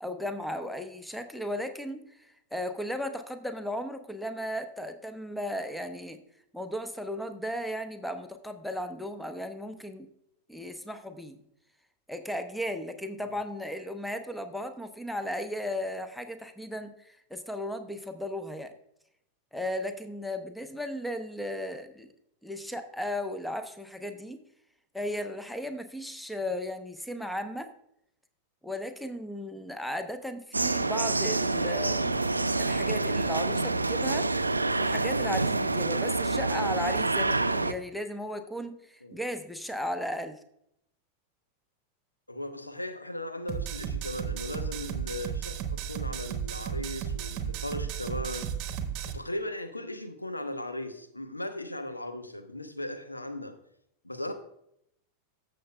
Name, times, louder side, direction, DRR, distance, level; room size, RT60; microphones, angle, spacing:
voice 1, 0.0-6.2 6.5-10.1 10.5-11.4 12.1-18.7 19.5-22.1 22.4-24.4 24.9-27.7 28.6-32.2 32.6-34.4 34.8-40.4, left 1 dB, ahead, 8 dB, 0.8 m, -35 dB
sound 1, 30.5-37.7, right 3 dB, 80° right, 0.4 m, -27 dB
voice 2, 42.3-48.5 49.1-53.6 54.0-54.3, left 1 dB, 85° left, 8 dB, 0.8 m, -37 dB
sound 2, 43.5-49.1, right 8 dB, 40° right, 1.0 m, -34 dB
14.0 x 6.7 x 2.2 m, 0.76 s
figure-of-eight pair, 90°, 0 cm